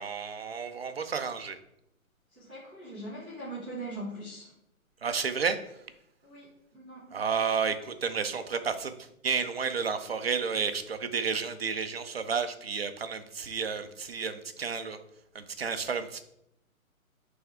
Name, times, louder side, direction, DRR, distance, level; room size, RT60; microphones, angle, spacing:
voice 1, 0.0-1.6 5.0-5.6 7.1-9.0 9.2-15.0 15.3-16.2, right 6 dB, 45° right, 9 dB, 0.5 m, -31 dB
voice 2, 2.3-4.5 6.2-7.2, right 1 dB, 5° left, -12 dB, 0.9 m, -41 dB
8.7 x 3.5 x 3.5 m, 0.80 s
hypercardioid pair, 180°, 43 cm